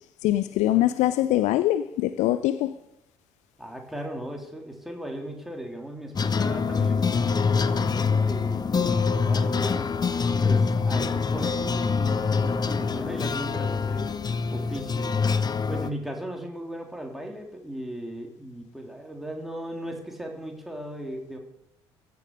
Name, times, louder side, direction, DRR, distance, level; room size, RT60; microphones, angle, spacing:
voice 1, 0.2-2.7, left 14 dB, 55° left, 0.5 m, -23 dB
voice 2, 3.6-9.9 10.4-14.1 14.5-15.1 15.7-21.4, right 1 dB, ahead, 3.6 m, -37 dB
sound 1, 6.1-15.9, left 5 dB, 30° left, 0.9 m, -25 dB
15.5 x 8.6 x 6.6 m
figure-of-eight pair, 50°, 14 cm